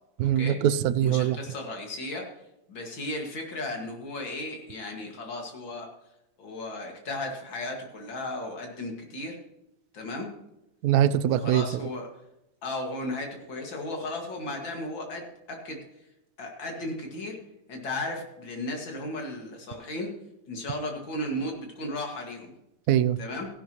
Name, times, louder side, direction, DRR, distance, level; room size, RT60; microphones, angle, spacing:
voice 1, 0.2-1.4 10.8-11.8 22.9-23.2, right 11 dB, 70° right, 14 dB, 0.9 m, -23 dB
voice 2, 1.0-2.3 2.7-5.9 6.4-9.4 9.9-10.3 11.3-12.1 12.6-15.8 16.4-17.4 17.7-20.1 20.5-22.5 23.2-23.5, left 1 dB, 90° left, 2 dB, 2.8 m, -35 dB
15.5 x 11.5 x 3.0 m, 0.89 s
omnidirectional pair, 2.0 m